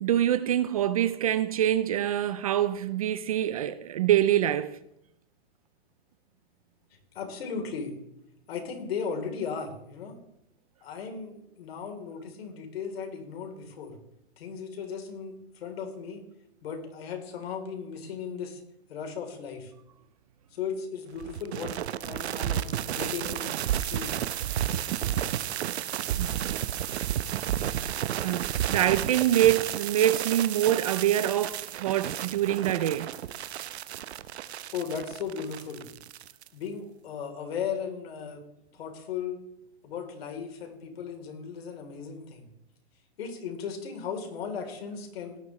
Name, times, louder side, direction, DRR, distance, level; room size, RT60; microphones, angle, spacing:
voice 1, 0.0-4.8 26.2-26.6 28.2-33.1, right 12 dB, 35° right, 0.4 m, -25 dB
voice 2, 7.2-8.0 8.5-10.2 10.8-14.0 14.4-16.2 16.6-18.6 18.9-19.7 20.5-21.7 22.0-22.6 22.9-24.2 34.7-35.8 36.5-38.4 38.7-39.4 39.8-42.5 43.2-45.4, left 6 dB, 65° left, 3.5 m, -36 dB
sound 1, 21.2-36.5, right 11 dB, 80° right, 0.8 m, -32 dB
17.5 x 10.5 x 3.1 m
hypercardioid pair, 160°, 32 cm